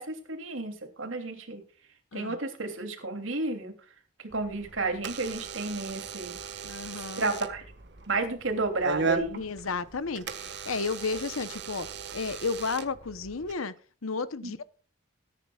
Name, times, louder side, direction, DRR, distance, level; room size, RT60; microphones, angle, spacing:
voice 1, 0.0-1.6 2.1-3.7 4.3-6.4 7.2-7.6 8.1-9.4 14.4-14.5, right 3 dB, 70° right, 3.1 m, -32 dB
Door / Alarm, 4.3-13.5, right 4 dB, 55° right, 1.6 m, -37 dB
voice 2, 6.6-7.3 9.3-13.7 14.0-14.6, left 4 dB, 90° left, 1.0 m, -33 dB
21.0 x 10.5 x 2.4 m
head